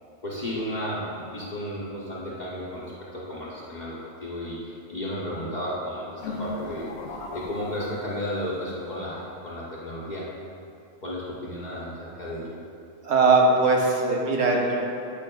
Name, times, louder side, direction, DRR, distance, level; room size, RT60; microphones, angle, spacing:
voice 1, 0.2-6.9 7.3-10.3 11.0-12.6, equal, 45° left, -7 dB, 0.8 m, -33 dB
sound 1, 6.2-8.6, left 2 dB, 80° left, 0.8 m, -37 dB
voice 2, 13.0-14.9, right 3 dB, 75° right, -1 dB, 1.1 m, -20 dB
8.6 x 4.9 x 2.2 m, 2.6 s
omnidirectional pair, 1.1 m